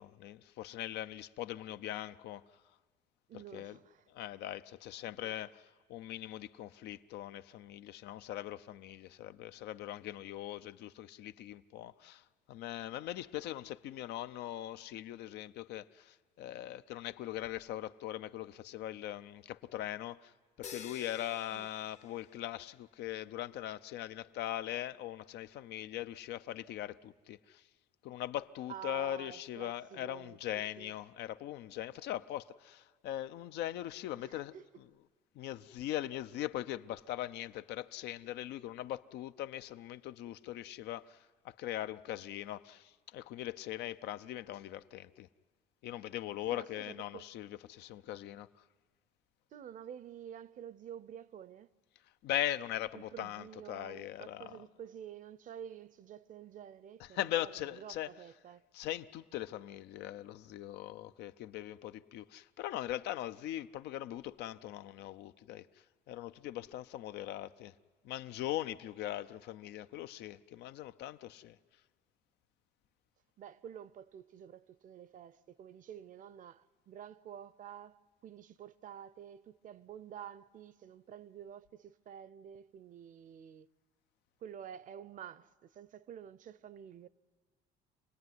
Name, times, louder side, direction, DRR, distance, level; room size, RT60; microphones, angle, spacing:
voice 1, 0.0-2.4 3.3-3.8 4.1-5.6 5.9-20.3 20.6-27.6 28.0-35.1 35.3-45.3 45.8-48.5 52.2-54.7 57.0-58.3 58.7-65.7 66.1-67.7 68.0-71.6, left 13 dB, 80° left, 0.6 m, -41 dB
voice 2, 3.3-4.1 5.2-5.4 21.5-21.7 28.7-30.9 34.2-34.7 46.5-47.3 49.5-51.7 52.9-58.6 73.4-83.7 84.4-87.1, right 9 dB, 50° right, 0.7 m, -50 dB
sound 1, 20.6-22.8, left 7 dB, 40° left, 0.8 m, -50 dB
26.5 x 18.5 x 9.5 m
cardioid pair, 110°, 17 cm